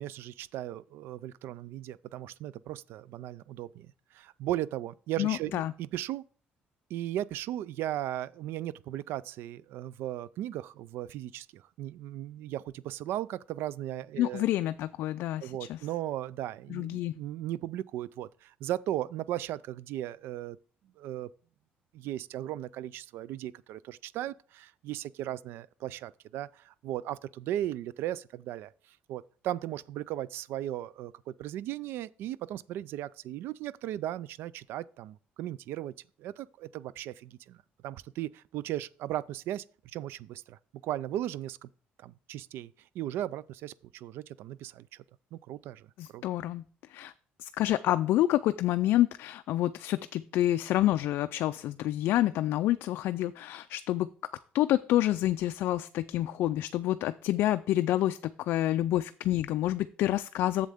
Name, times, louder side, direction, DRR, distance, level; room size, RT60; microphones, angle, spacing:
voice 1, 0.0-6.2 6.9-14.5 15.4-20.6 21.0-21.3 21.9-28.7 29.1-35.9 36.2-37.6 37.8-41.7 42.0-45.0 45.3-45.8 46.1-46.2, right 13 dB, 80° right, 0.3 m, -37 dB
voice 2, 5.2-5.7 14.2-15.8 16.7-17.2 46.0-47.1 47.4-54.1 54.5-60.7, left 14 dB, 75° left, 0.3 m, -28 dB
7.6 x 7.3 x 3.6 m
cardioid pair, 110°, 4 cm